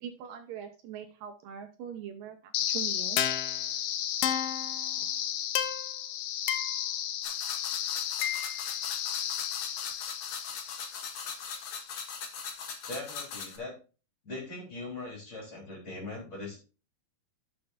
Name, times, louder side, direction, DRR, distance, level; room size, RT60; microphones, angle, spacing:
voice 1, 0.0-3.2, right 8 dB, 70° right, 5 dB, 2.5 m, -42 dB
sound 1, 2.5-11.6, left 11 dB, 90° left, 2.8 m, -32 dB
sound 2, 7.2-13.6, left 6 dB, 60° left, 2.9 m, -40 dB
voice 2, 12.9-13.7 14.2-16.6, left 2 dB, 35° left, -1 dB, 4.0 m, -40 dB
13.0 x 6.9 x 2.6 m, 0.34 s
omnidirectional pair, 4.3 m